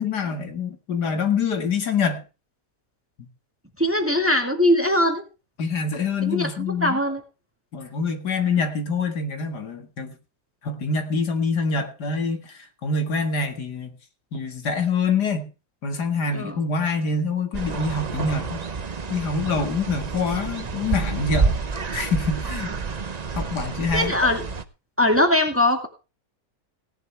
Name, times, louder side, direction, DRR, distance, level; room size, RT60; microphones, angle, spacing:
voice 1, 0.0-2.2 3.2-3.3 5.6-7.0 7.7-10.1 10.6-13.9 14.3-15.5 15.8-18.6 19.1-21.6 21.9-22.8 23.4-24.1, left 4 dB, 75° left, 6 dB, 2.4 m, -25 dB
voice 2, 3.8-5.2 6.2-7.2 16.3-16.6 23.9-24.4 25.0-25.9, left 1 dB, 10° right, 5 dB, 1.9 m, -21 dB
sound 1, 17.5-24.6, right 4 dB, 35° right, 0.7 m, -28 dB
17.5 x 11.0 x 3.4 m, 0.31 s
omnidirectional pair, 1.8 m